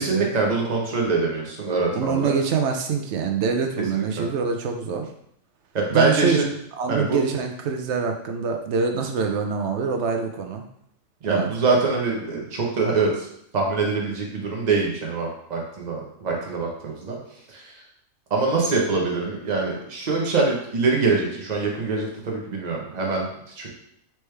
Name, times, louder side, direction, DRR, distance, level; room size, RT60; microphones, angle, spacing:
voice 1, 0.0-2.3 3.9-4.3 5.7-6.4 6.9-7.2 11.2-13.3 13.5-17.2 17.5-17.7 18.3-23.3 23.6-23.7, right 4 dB, 35° right, -2 dB, 0.9 m, -24 dB
voice 2, 1.9-5.1 5.9-6.4 6.8-10.6 11.3-11.5, right 5 dB, 65° right, 4 dB, 0.8 m, -25 dB
4.4 x 3.2 x 3.2 m, 0.72 s
omnidirectional pair, 1.4 m